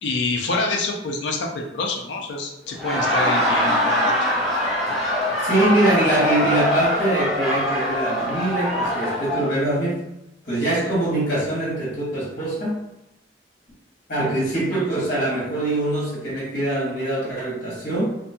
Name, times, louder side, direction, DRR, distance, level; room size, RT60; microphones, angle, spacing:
voice 1, 0.0-4.1, left 3 dB, 70° left, 1 dB, 0.5 m, -26 dB
Laughter, 2.7-9.5, equal, ahead, 0.5 m, -23 dB
voice 2, 5.4-10.0 10.4-12.8 14.1-18.2, right 1 dB, 50° left, -7 dB, 1.2 m, -23 dB
2.6 x 2.2 x 2.7 m, 0.89 s
head